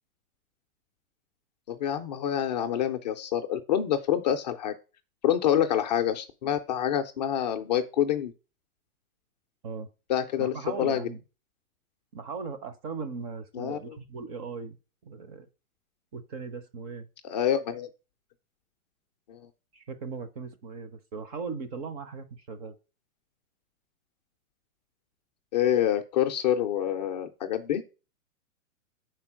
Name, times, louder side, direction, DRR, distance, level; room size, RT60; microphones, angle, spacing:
voice 1, 1.7-4.7 5.2-8.3 10.1-11.1 13.5-14.0 17.2-17.9 19.3-19.5 25.5-27.8, left 10 dB, 30° left, 6 dB, 0.4 m, -27 dB
voice 2, 10.4-11.2 12.1-14.8 15.0-15.5 16.1-17.1 19.7-22.7, right 4 dB, 30° right, 10 dB, 0.6 m, -38 dB
5.4 x 4.5 x 6.1 m, 0.32 s
hypercardioid pair, 145°, 43 cm